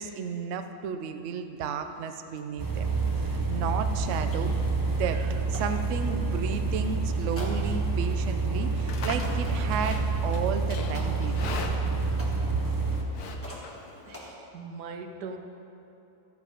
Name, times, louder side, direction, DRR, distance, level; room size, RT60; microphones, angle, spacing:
voice 1, 0.0-2.9 3.2-4.6 4.9-11.6, right 6 dB, 65° right, 8 dB, 0.8 m, -33 dB
sound 1, 1.2-1.3 1.5-6.2 7.3-8.0 8.6-8.7 9.2-10.1 10.9-13.1 13.4-14.3, equal, 10° left, 1.3 m, -47 dB
sound 2, 2.6-13.0, right 3 dB, 20° right, 0.7 m, -28 dB
Livestock farm animals working animals, 8.6-14.3, left 4 dB, 75° left, 1.3 m, -41 dB
voice 2, 14.1-15.4, right 4 dB, 90° right, 5 dB, 1.4 m, -40 dB
12.5 x 8.2 x 5.0 m, 2.8 s
omnidirectional pair, 1.7 m